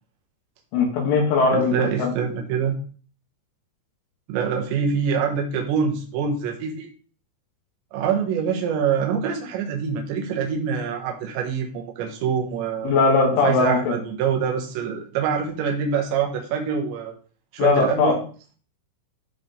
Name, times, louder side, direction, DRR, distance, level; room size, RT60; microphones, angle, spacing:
voice 1, 0.7-2.1 12.8-13.9 17.6-18.1, left 4 dB, 85° left, -1 dB, 4.5 m, -20 dB
voice 2, 1.5-2.8 4.3-6.9 7.9-12.9 13.4-17.1 17.5-18.2, right 6 dB, 75° right, 1 dB, 3.5 m, -25 dB
13.5 x 4.7 x 3.4 m, 0.40 s
omnidirectional pair, 5.5 m